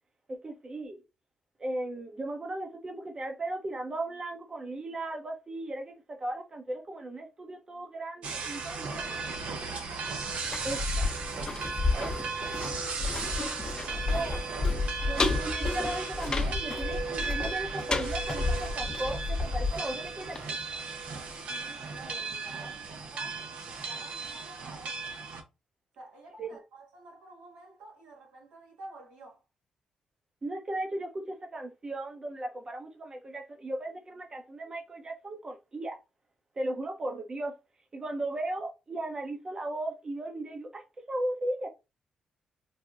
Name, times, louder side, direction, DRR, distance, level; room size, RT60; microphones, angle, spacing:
voice 1, 0.3-1.0 1.6-9.3 10.6-11.1 11.9-12.1 13.0-13.1 13.4-13.5 14.1-14.5 15.1-20.6 26.4-26.5 30.4-36.0 36.6-37.6 37.9-41.7, right 1 dB, 35° right, 0.7 m, -36 dB
sound 1, 8.2-25.4, right 4 dB, 70° right, 0.7 m, -36 dB
voice 2, 9.7-10.3 10.5-10.9 13.7-14.3 21.2-25.0 25.9-29.4, right 2 dB, 90° right, 1.5 m, -50 dB
sound 2, 10.3-21.1 21.4-21.5, left 3 dB, 35° left, 0.7 m, -32 dB
4.2 x 2.1 x 2.4 m
supercardioid pair, 65°, 2 cm